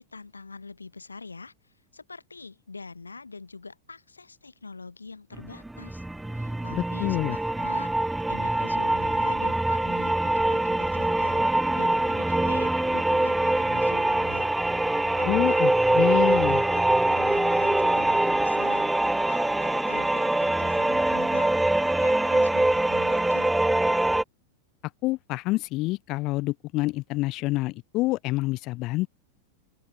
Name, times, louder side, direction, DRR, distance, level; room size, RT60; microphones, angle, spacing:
voice 1, 0.0-6.0 6.3-14.5 15.2-15.9 16.1-18.9 19.2-23.5, left 4 dB, 80° left, 6.5 m, -44 dB
sound 1, 5.4-24.2, right 1 dB, 5° right, 0.9 m, -24 dB
voice 2, 6.7-7.4 15.3-16.6 25.0-29.1, left 20 dB, 40° left, 1.1 m, -27 dB
open air
figure-of-eight pair, 90°, 0 cm